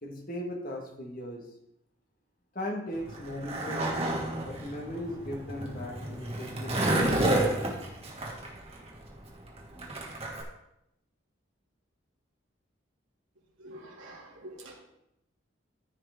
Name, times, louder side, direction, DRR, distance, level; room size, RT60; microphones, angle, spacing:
voice 1, 0.0-1.5 2.5-4.1 4.4-7.1, left 1 dB, 45° left, 1 dB, 1.7 m, -38 dB
Skateboard, 2.9-10.4, right 1 dB, 30° right, 1.6 m, -30 dB
voice 2, 13.6-14.7, right 1 dB, 90° right, -3 dB, 2.8 m, -46 dB
13.5 x 5.9 x 3.7 m, 0.81 s
head